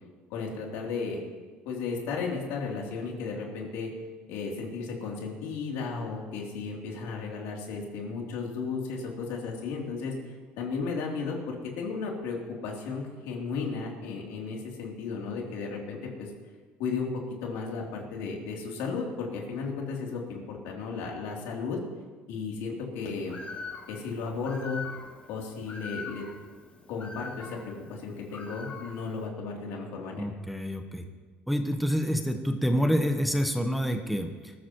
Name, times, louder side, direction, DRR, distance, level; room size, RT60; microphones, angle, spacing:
voice 1, 0.3-1.2 1.6-3.9 4.3-10.1 10.6-16.3 16.8-17.1 17.4-21.8 22.3-23.4 23.9-24.8 25.3-26.2 26.9-30.3, left 4 dB, 85° left, -1 dB, 3.1 m, -34 dB
Bird, 23.3-29.3, left 4 dB, 35° left, 3.0 m, -43 dB
voice 2, 30.2-31.0 31.5-34.5, equal, ahead, 5 dB, 1.0 m, -27 dB
20.5 x 14.0 x 3.1 m, 1.4 s
cardioid pair, 125°, 4 cm